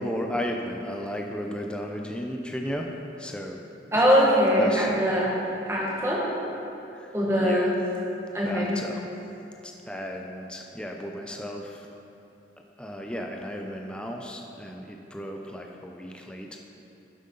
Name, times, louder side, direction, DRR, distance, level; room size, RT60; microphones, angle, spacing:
voice 1, 0.0-2.9 3.2-3.6 3.9-4.1 4.6-5.3 6.9-7.7 8.4-9.0 9.6-11.9 12.8-16.6, equal, 5° left, 1 dB, 0.5 m, -35 dB
voice 2, 3.9-5.3 5.7-6.2 7.1-7.7 8.3-8.7, equal, 15° right, -5 dB, 1.6 m, -22 dB
11.0 x 7.8 x 3.9 m, 2.9 s
head